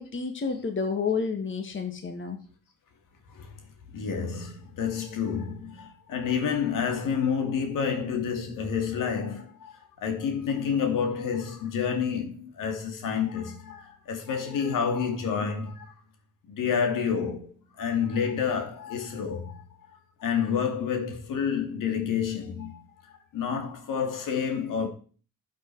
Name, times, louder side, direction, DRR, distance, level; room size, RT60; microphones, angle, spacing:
voice 1, 0.0-2.4, left 5 dB, 35° left, 1.8 m, -30 dB
voice 2, 3.9-15.9 16.5-17.5 17.8-19.6 20.2-24.9, left 7 dB, 70° left, 2.4 m, -29 dB
11.5 x 6.4 x 4.7 m
supercardioid pair, 70°, 33 cm